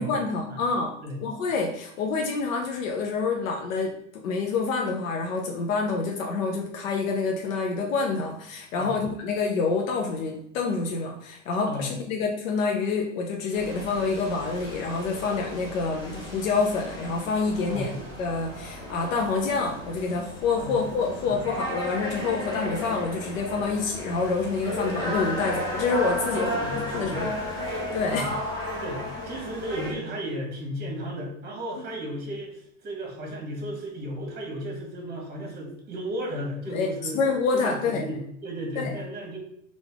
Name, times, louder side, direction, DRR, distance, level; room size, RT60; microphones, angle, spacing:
voice 1, 0.0-27.3 27.7-28.3 31.8-31.9 36.7-36.9 37.1-38.0 38.8-38.9, left 4 dB, 90° left, 1 dB, 0.6 m, -27 dB
sound 1, 13.5-29.9, left 1 dB, 10° left, 1.0 m, -34 dB
voice 2, 26.3-27.2 28.0-28.3 28.8-37.2 37.5-39.4, right 1 dB, 25° right, 1 dB, 1.1 m, -34 dB
3.3 x 2.5 x 3.4 m, 0.72 s
supercardioid pair, 135°, 39 cm